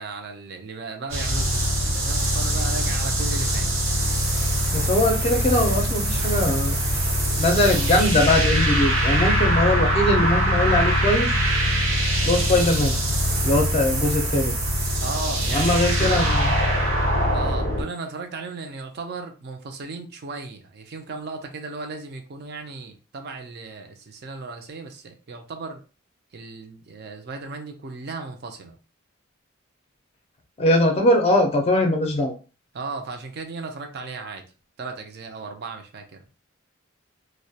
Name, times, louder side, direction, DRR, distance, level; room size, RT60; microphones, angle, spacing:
voice 1, 0.0-3.7 15.0-16.4 17.3-25.8 26.3-28.8 32.7-34.5 34.8-36.2, right 3 dB, 50° right, 0.4 m, -35 dB
sound 1, 1.1-17.8, equal, 85° right, 1.0 m, -22 dB
voice 2, 4.7-6.8 7.4-11.3 12.2-13.0 13.4-14.5 15.5-16.6 30.6-32.3, left 1 dB, 30° left, 0.4 m, -21 dB
2.2 x 2.1 x 2.7 m
head